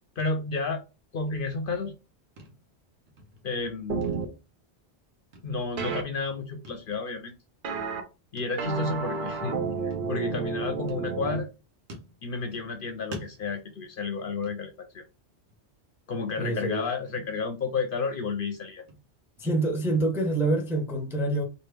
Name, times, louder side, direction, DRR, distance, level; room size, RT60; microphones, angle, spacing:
voice 1, 0.2-0.8 1.1-1.9 3.4-4.1 5.4-7.3 8.3-9.6 9.8-11.5 12.2-15.0 16.1-18.8, left 4 dB, 60° left, 0.6 m, -31 dB
sound 1, 1.3-2.1 2.4-2.8 3.1-3.7 4.0-5.0 5.3-6.0 6.6-6.9 7.3-7.4 8.4-8.7 9.0-9.1 9.9-10.5 10.9-11.5 11.9-12.8 13.1-15.1 15.5-15.8 16.1-16.2 16.7-17.4 17.8-20.3, right 1 dB, 75° right, 1.1 m, -48 dB
sound 2, 3.9-4.3 5.8-6.0 7.6-8.0 8.6-11.4, right 5 dB, 55° right, 0.6 m, -31 dB
voice 2, 16.4-16.9 19.4-21.4, right 2 dB, 5° right, 0.5 m, -26 dB
3.2 x 2.4 x 3.2 m
omnidirectional pair, 1.2 m